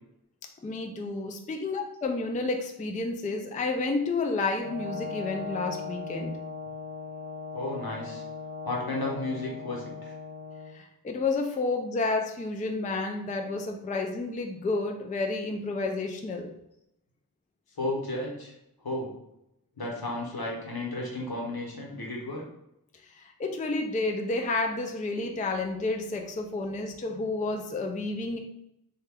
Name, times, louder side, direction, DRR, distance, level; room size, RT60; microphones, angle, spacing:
voice 1, 0.6-6.4 10.7-16.5 23.0-28.4, left 3 dB, 20° left, 3 dB, 0.3 m, -30 dB
Brass instrument, 4.6-10.7, left 4 dB, 25° right, 0.7 m, -38 dB
voice 2, 7.5-8.2 8.6-10.1 17.8-18.5 18.8-19.1 19.8-22.4, left 2 dB, 70° left, -2 dB, 0.9 m, -33 dB
2.8 x 2.2 x 3.4 m, 0.82 s
wide cardioid pair, 45°, 38 cm